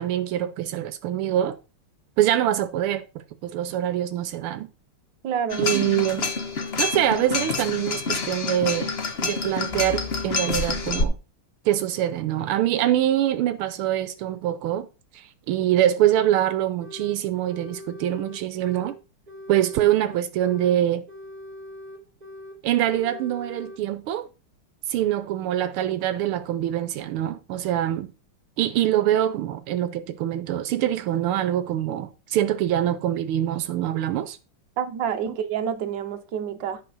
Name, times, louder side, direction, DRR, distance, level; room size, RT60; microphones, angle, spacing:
voice 1, 0.0-1.6 2.2-3.0 3.4-4.7 5.6-6.3 6.8-8.9 9.2-11.2 11.6-14.9 15.1-18.9 19.5-21.0 22.6-24.3 24.9-28.1 28.6-34.4 35.3-35.4, right 12 dB, 80° right, 1.6 m, -24 dB
voice 2, 5.2-5.7 34.8-36.8, right 8 dB, 60° right, 1.5 m, -28 dB
sound 1, 5.5-11.0, left 3 dB, 40° left, 1.0 m, -27 dB
sound 2, 16.8-17.2 17.5-19.0 19.3-20.8 21.1-22.6 22.9-23.8, left 1 dB, 25° right, 1.2 m, -42 dB
11.0 x 4.4 x 6.0 m
omnidirectional pair, 2.4 m